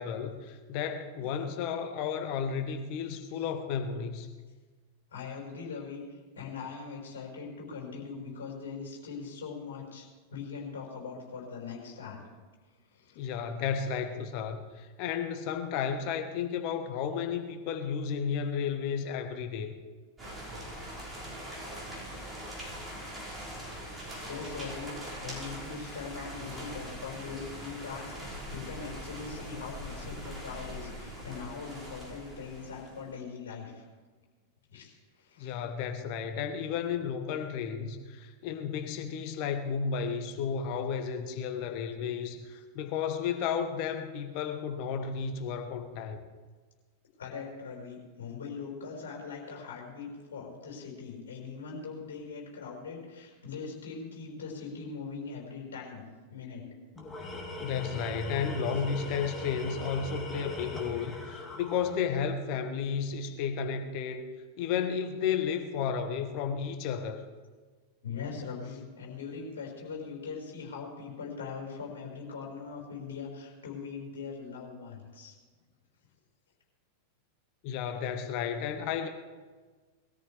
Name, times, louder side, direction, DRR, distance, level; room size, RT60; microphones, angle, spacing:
voice 1, 0.0-4.3 13.1-19.7 35.4-46.2 57.6-64.3 64.6-67.3 77.6-79.1, left 7 dB, 45° left, 6 dB, 1.3 m, -33 dB
voice 2, 5.1-12.2 12.9-13.3 24.3-33.9 34.7-35.6 47.2-56.0 56.3-56.6 68.0-75.4, left 5 dB, 65° left, -2 dB, 5.2 m, -41 dB
sound 1, 20.2-33.1, equal, 15° right, 5.7 m, -42 dB
Tools, 56.9-62.3, left 1 dB, 15° left, 2.3 m, -40 dB
21.0 x 13.5 x 3.5 m, 1.4 s
figure-of-eight pair, 90°, 0 cm